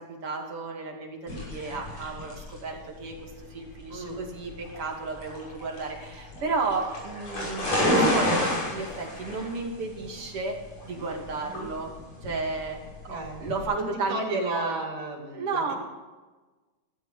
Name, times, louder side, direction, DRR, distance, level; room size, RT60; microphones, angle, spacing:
voice 1, 0.0-10.6 10.8-11.9 12.2-12.8 13.0-14.8 15.3-15.7, right 3 dB, 45° right, 0 dB, 3.5 m, -33 dB
sound 1, 1.3-13.6, left 1 dB, 50° left, 7.3 m, -31 dB
voice 2, 3.9-4.2 11.4-11.7 13.1-13.4 13.8-15.7, right 2 dB, 80° right, 1 dB, 4.3 m, -33 dB
15.5 x 13.5 x 5.8 m, 1.2 s
omnidirectional pair, 3.6 m